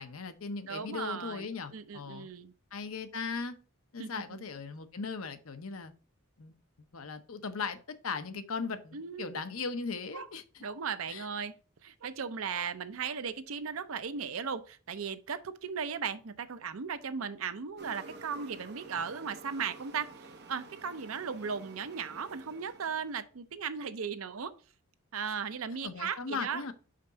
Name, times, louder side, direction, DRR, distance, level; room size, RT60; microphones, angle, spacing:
voice 1, 0.0-2.3 2.7-3.6 3.9-5.9 6.4-6.5 6.9-10.6 11.1-11.2 25.8-26.7, left 4 dB, 75° left, 0.8 m, -38 dB
voice 2, 0.7-2.5 4.0-4.4 8.9-9.4 10.1-10.3 10.6-11.6 11.8-24.5 25.1-26.6, right 6 dB, 75° right, 0.6 m, -37 dB
sound 1, 17.8-23.2, right 3 dB, 55° right, 0.9 m, -50 dB
5.5 x 5.1 x 4.0 m
head